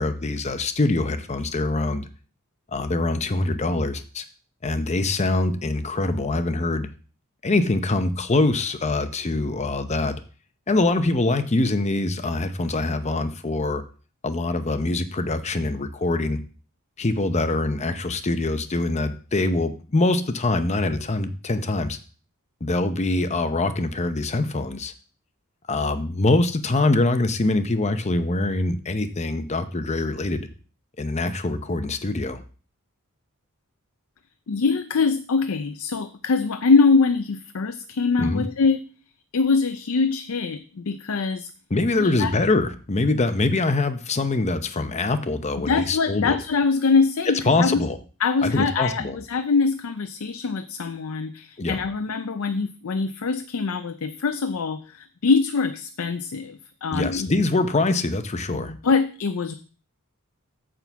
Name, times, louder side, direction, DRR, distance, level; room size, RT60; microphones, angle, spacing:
voice 1, 0.0-2.1 2.7-4.2 4.6-6.9 7.4-10.2 10.7-13.8 14.2-16.4 17.0-22.0 22.6-24.9 25.7-30.5 31.0-32.4 38.2-38.4 41.7-46.4 47.5-48.0 48.4-49.2 51.6-51.8 56.9-58.7, left 2 dB, 30° left, 10 dB, 0.7 m, -24 dB
voice 2, 34.5-38.8 39.3-41.5 42.0-42.3 45.6-47.9 48.2-57.3 58.5-59.5, left 4 dB, 65° left, 10 dB, 0.5 m, -23 dB
9.0 x 3.8 x 7.0 m, 0.38 s
head